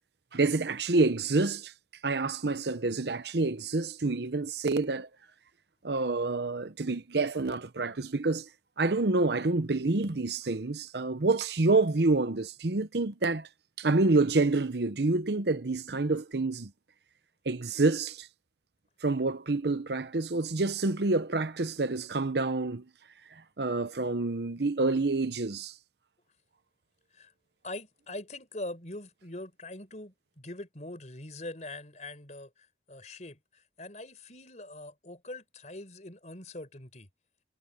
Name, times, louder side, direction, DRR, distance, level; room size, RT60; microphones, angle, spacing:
voice 1, 0.3-1.7 2.0-5.1 5.8-8.5 8.8-13.5 13.8-16.7 17.5-18.3 19.0-22.8 23.6-25.7, right 3 dB, 65° right, 0.8 m, -27 dB
voice 2, 27.6-37.1, left 2 dB, 40° left, 4.4 m, -43 dB
head